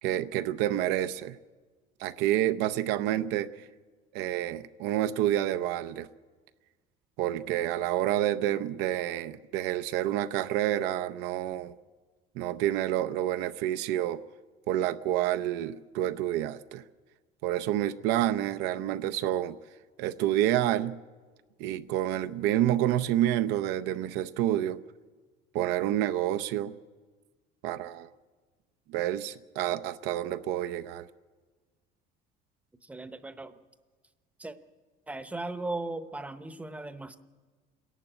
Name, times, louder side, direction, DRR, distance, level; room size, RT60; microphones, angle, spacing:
voice 1, 0.0-1.4 2.0-3.7 4.1-6.1 7.2-11.7 12.4-14.2 14.7-16.8 17.4-19.6 20.0-21.0 21.6-24.8 25.5-26.8 27.6-28.1 28.9-31.1, right 12 dB, 80° right, 0.7 m, -28 dB
voice 2, 32.8-33.6 34.4-34.6 35.1-37.2, right 2 dB, 10° right, 0.8 m, -37 dB
27.0 x 11.0 x 9.0 m
cardioid pair, 150°, 18 cm